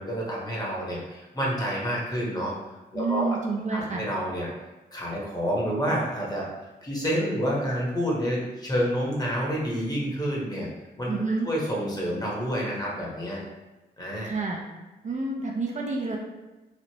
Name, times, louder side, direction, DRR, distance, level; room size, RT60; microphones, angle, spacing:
voice 1, 0.0-2.5 2.9-3.4 3.7-4.5 4.9-6.5 6.8-10.7 11.0-11.1 11.4-13.4 14.0-14.3, equal, 20° left, -4 dB, 1.1 m, -28 dB
voice 2, 2.9-4.1 11.1-11.5 14.2-14.6 15.0-16.2, right 3 dB, 45° right, 0 dB, 0.5 m, -29 dB
3.1 x 2.4 x 2.8 m, 1.1 s
cardioid pair, 70°, 17 cm